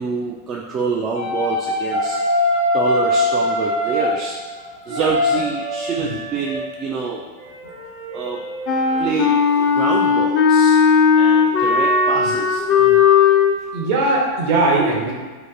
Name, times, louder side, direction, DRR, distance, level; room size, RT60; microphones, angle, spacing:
voice 1, 0.0-2.2 2.7-4.4 4.9-7.2 8.1-8.4 9.0-10.8 11.2-12.8, right 5 dB, 30° right, -2 dB, 0.3 m, -26 dB
sound 1, 1.1-6.8 7.4-9.7 11.2-12.3, left 1 dB, 85° right, 1.0 m, -23 dB
voice 2, 4.8-5.1 6.0-6.1 12.1-12.3 12.8-13.0 13.7-15.1, right 2 dB, 50° right, -2 dB, 0.7 m, -20 dB
Wind instrument woodwind instrument, 8.7-13.6, left 6 dB, 40° left, 0.4 m, -16 dB
2.8 x 2.5 x 3.5 m, 1.5 s
figure-of-eight pair, 90°, 0 cm